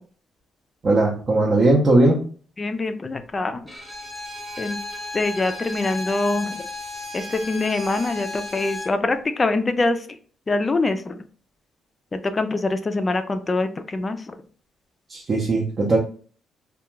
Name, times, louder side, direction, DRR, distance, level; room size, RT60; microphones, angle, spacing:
voice 1, 0.8-2.2 15.1-16.0, right 2 dB, 45° right, -3 dB, 0.6 m, -18 dB
voice 2, 2.6-3.6 4.6-4.8 5.1-6.6 7.1-10.0 10.5-11.2 12.1-14.2, left 2 dB, 30° left, 9 dB, 0.3 m, -24 dB
Bowed string instrument, 3.7-9.0, left 2 dB, 5° left, 0.7 m, -34 dB
2.3 x 2.2 x 3.0 m, 0.43 s
cardioid pair, 90°, 0 cm